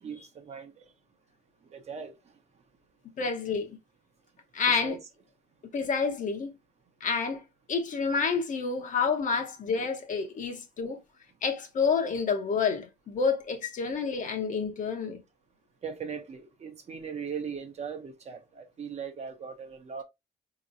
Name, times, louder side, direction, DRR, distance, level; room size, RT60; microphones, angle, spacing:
voice 1, 0.0-0.8 1.7-2.1 4.8-5.0 15.8-20.0, right 6 dB, 35° right, 0.9 m, -39 dB
voice 2, 3.2-3.7 4.5-5.0 5.7-6.5 7.0-7.4 7.7-11.0 11.4-15.2, left 5 dB, 45° left, 0.9 m, -29 dB
4.1 x 3.0 x 2.6 m
cardioid pair, 125°, 18 cm